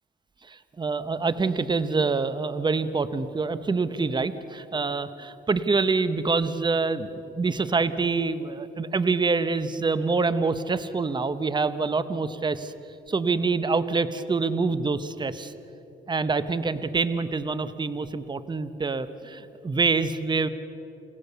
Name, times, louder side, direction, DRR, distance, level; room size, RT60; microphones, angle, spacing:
voice 1, 0.5-7.1 7.3-12.7 13.1-15.5 16.1-20.5, right 4 dB, 20° right, 12 dB, 0.9 m, -26 dB
29.0 x 16.5 x 6.8 m, 3.0 s
cardioid pair, 90°, 20 cm